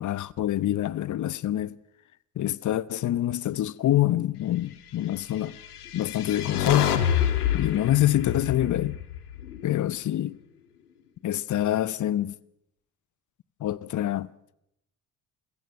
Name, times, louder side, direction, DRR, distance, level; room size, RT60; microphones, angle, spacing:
voice 1, 0.0-1.8 2.4-5.6 5.9-6.9 7.5-9.0 9.6-10.4 11.2-12.3 13.6-14.3, left 13 dB, 40° left, 0.9 m, -26 dB
sound 1, 5.6-9.9, left 9 dB, 85° left, 1.6 m, -28 dB
27.5 x 17.0 x 6.0 m
hypercardioid pair, 55°, 44 cm